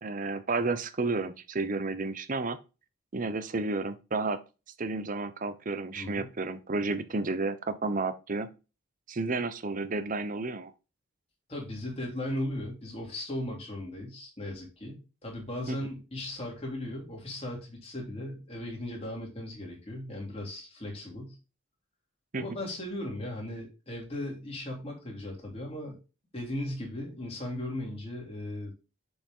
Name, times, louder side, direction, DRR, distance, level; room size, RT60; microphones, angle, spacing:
voice 1, 0.0-2.6 3.1-4.4 4.8-8.5 9.1-10.7 15.7-15.8 22.3-22.4, right 3 dB, 40° right, 0.7 m, -31 dB
voice 2, 5.9-6.3 11.5-21.4 22.4-26.0 26.3-28.7, left 1 dB, 30° left, 2.8 m, -37 dB
7.0 x 5.3 x 3.7 m
head